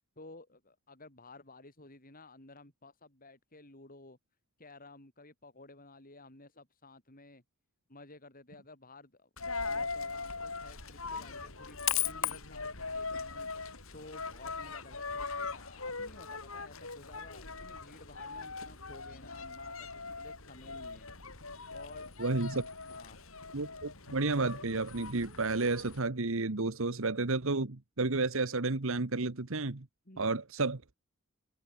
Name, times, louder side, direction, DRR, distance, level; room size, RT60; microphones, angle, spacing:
voice 1, 0.2-4.2 4.6-7.4 7.9-9.3 9.6-21.1 21.5-22.1 22.8-23.2 30.1-30.4, left 2 dB, 40° left, 6.1 m, -54 dB
Coin (dropping), 9.4-26.0, left 5 dB, 65° left, 4.9 m, -40 dB
voice 2, 22.2-22.7 23.5-29.9 30.2-30.9, right 3 dB, 65° right, 1.3 m, -31 dB
head